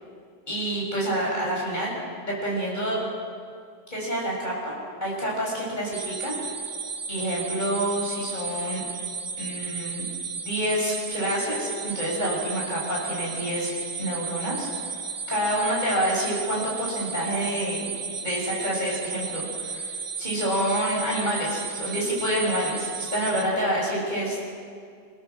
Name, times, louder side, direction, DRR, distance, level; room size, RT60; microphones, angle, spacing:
voice 1, 0.5-1.9 2.2-3.0 3.9-6.4 7.1-8.8 9.4-10.0 10.3-13.7 14.0-14.7 15.3-17.8 18.2-19.9 20.2-24.4, equal, 45° left, -4 dB, 8.3 m, -28 dB
sound 1, 5.9-23.4, right 5 dB, 45° right, 2.9 m, -34 dB
28.5 x 17.0 x 7.5 m, 2.2 s
omnidirectional pair, 1.1 m